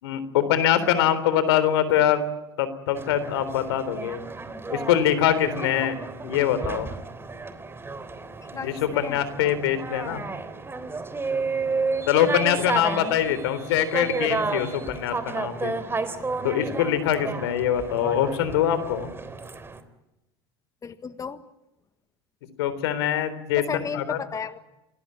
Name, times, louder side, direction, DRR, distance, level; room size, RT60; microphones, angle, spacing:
voice 1, 0.0-2.2 2.6-4.2 4.7-6.0 6.2-6.9 8.5-10.2 12.1-15.7 16.4-19.1 22.6-23.7 23.9-24.2, left 10 dB, 75° left, 14 dB, 3.7 m, -23 dB
sound 1, 2.9-19.8, right 4 dB, 20° right, 3.4 m, -32 dB
voice 2, 8.5-9.2 20.8-21.4 23.7-24.6, left 6 dB, 25° left, 11 dB, 1.6 m, -33 dB
28.0 x 20.0 x 8.7 m, 0.93 s
hypercardioid pair, 85°, 13 cm